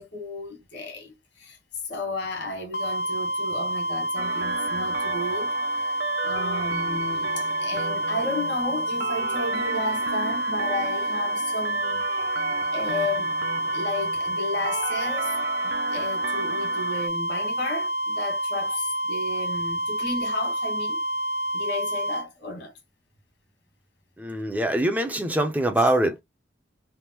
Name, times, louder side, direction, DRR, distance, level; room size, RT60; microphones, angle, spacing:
voice 1, 0.0-1.6 1.8-5.5 5.9-12.1 12.7-13.3 13.7-15.4 15.6-21.0 21.5-22.7 25.8-25.9, left 2 dB, 80° left, 1.4 m, -33 dB
sound 1, 2.7-22.3, right 1 dB, 60° left, 0.8 m, -28 dB
sound 2, 4.2-17.1, right 5 dB, 85° right, 0.5 m, -34 dB
voice 2, 24.2-26.2, right 1 dB, 10° right, 0.5 m, -23 dB
3.4 x 2.0 x 2.9 m
head